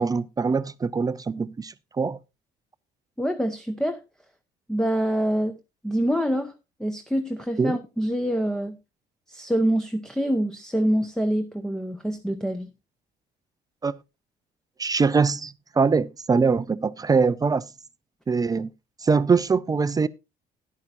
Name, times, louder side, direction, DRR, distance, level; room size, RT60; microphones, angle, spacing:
voice 1, 0.0-2.2 7.6-7.8 13.8-14.0 14.8-17.6 18.3-18.7 19.0-20.1, right 4 dB, 20° right, 0.5 m, -23 dB
voice 2, 3.2-4.0 4.7-5.6 5.8-6.5 6.8-8.8 9.3-12.7, equal, 5° left, 0.9 m, -25 dB
13.0 x 11.0 x 2.6 m
cardioid pair, 110°, 17 cm